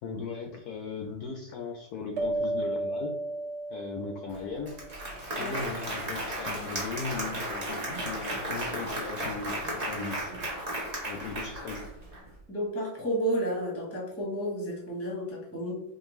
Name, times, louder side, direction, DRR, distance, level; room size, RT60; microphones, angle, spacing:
voice 1, 0.0-3.1 3.7-10.3 11.1-11.9, left 4 dB, 75° left, 3 dB, 0.9 m, -38 dB
sound 1, 2.2-5.1, right 2 dB, 85° right, 0.6 m, -33 dB
Applause, 4.3-4.4 4.7-12.2, right 1 dB, 30° right, 0.7 m, -34 dB
voice 2, 12.5-15.8, right 1 dB, 10° left, -3 dB, 0.7 m, -31 dB
4.9 x 2.5 x 3.0 m, 0.89 s
omnidirectional pair, 2.1 m